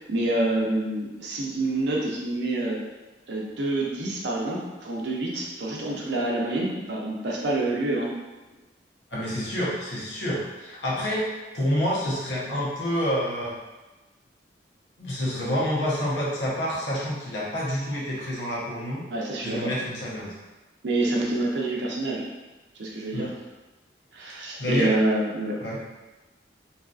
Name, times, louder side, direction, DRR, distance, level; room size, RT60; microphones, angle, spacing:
voice 1, 0.0-2.8 3.3-8.1 19.1-19.7 20.8-22.3 22.8-23.3 24.1-25.6, right 2 dB, 75° right, -3 dB, 0.6 m, -27 dB
voice 2, 9.1-11.3 11.5-13.6 15.0-19.0 19.4-20.3 23.1-23.3 24.6-24.9 25.6-25.8, equal, 85° left, -6 dB, 0.8 m, -28 dB
2.7 x 2.4 x 2.4 m, 1.1 s
head